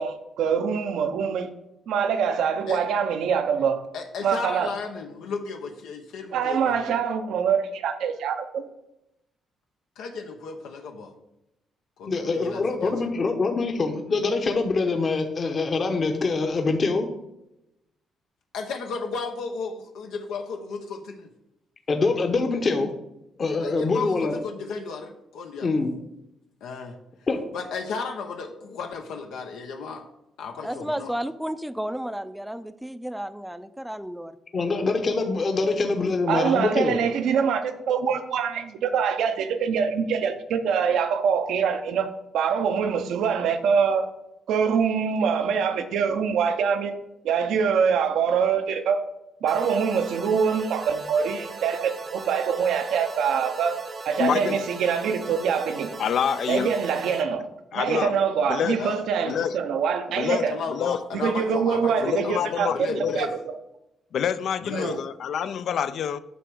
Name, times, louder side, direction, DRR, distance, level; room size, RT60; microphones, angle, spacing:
voice 1, 0.0-1.5 1.9-3.8 4.2-4.7 6.3-8.6 36.3-44.1 44.5-46.9 47.2-49.0 49.4-55.9 56.5-57.5 57.7-60.6 61.1-63.6 64.7-65.0, right 6 dB, 80° right, 0.8 m, -24 dB
voice 2, 3.9-7.0 10.0-11.1 12.0-12.9 18.5-21.3 23.6-25.7 26.6-27.0 27.5-30.0 30.4-31.1 58.8-59.0 59.3-59.5 60.5-63.3 64.6-64.9, left 4 dB, 85° left, 0.8 m, -34 dB
voice 3, 12.0-17.1 21.9-22.9 23.4-24.3 25.6-25.9 27.3-27.4 34.5-37.0, left 3 dB, 40° left, 1.0 m, -24 dB
voice 4, 30.6-34.4, equal, 5° right, 0.5 m, -32 dB
sound 1, 49.5-57.2, right 3 dB, 35° right, 0.7 m, -38 dB
voice 5, 54.2-54.6 56.0-56.7 57.7-58.1 58.5-58.8 59.3-59.5 60.2-61.0 62.0-63.2 64.1-66.2, left 8 dB, 65° left, 0.4 m, -27 dB
9.3 x 3.4 x 6.3 m
cardioid pair, 90°, 0 cm